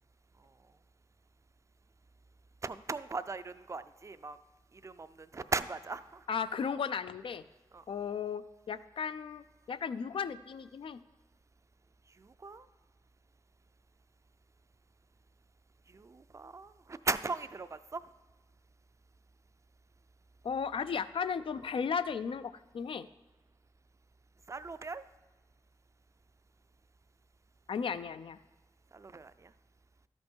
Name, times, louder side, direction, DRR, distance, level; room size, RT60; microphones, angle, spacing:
voice 1, 2.6-4.4 4.8-5.1 5.3-6.0 7.7-7.8 12.4-12.6 15.9-18.0 24.5-25.0 28.9-29.3, right 4 dB, 35° right, 12 dB, 0.4 m, -37 dB
voice 2, 6.3-7.4 7.9-11.0 20.4-23.1 27.7-28.4, left 6 dB, 75° left, 13 dB, 0.3 m, -35 dB
12.5 x 5.3 x 4.5 m, 1.2 s
wide cardioid pair, 75°, 9 cm